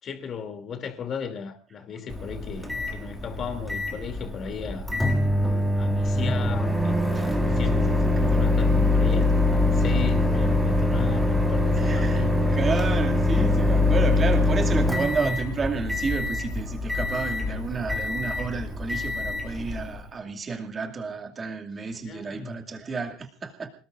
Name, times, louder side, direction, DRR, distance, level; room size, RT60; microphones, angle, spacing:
voice 1, 0.0-4.9 5.4-6.9 7.4-12.5 22.0-22.6, left 7 dB, 35° left, 3.0 m, -36 dB
Microwave oven, 2.1-20.1, left 2 dB, ahead, 2.5 m, -24 dB
voice 2, 7.1-7.6 8.3-8.4 11.8-12.2 12.5-23.7, right 4 dB, 25° right, 2.5 m, -31 dB
27.0 x 19.5 x 2.6 m
cardioid pair, 145°, 0 cm